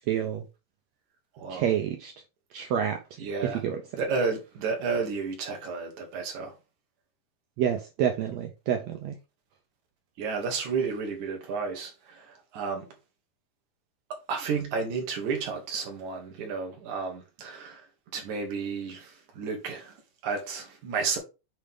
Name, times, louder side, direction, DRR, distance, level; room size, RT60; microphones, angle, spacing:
voice 1, 0.1-0.4 1.5-2.1 2.5-3.0 3.4-3.8 7.6-9.2, right 9 dB, 85° right, 1.5 m, -28 dB
voice 2, 1.4-1.7 3.2-3.6 3.9-6.5 10.2-12.9 14.3-17.9 18.1-20.0 20.2-21.2, right 5 dB, 60° right, 2.8 m, -32 dB
8.5 x 3.3 x 3.7 m
omnidirectional pair, 4.0 m